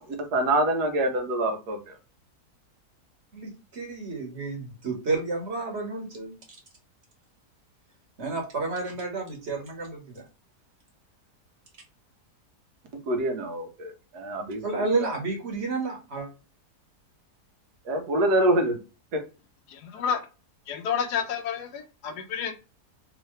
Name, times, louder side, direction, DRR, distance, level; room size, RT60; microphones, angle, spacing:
voice 1, 0.1-2.0 13.1-15.1 17.8-18.8 19.1-19.2, right 1 dB, 75° right, 1.4 m, -26 dB
voice 2, 3.3-6.3 8.2-10.2 14.6-16.3, right 3 dB, 45° right, 1.5 m, -31 dB
voice 3, 19.7-20.2 20.7-22.5, left 7 dB, 85° left, 1.3 m, -30 dB
3.6 x 2.9 x 3.2 m
omnidirectional pair, 1.7 m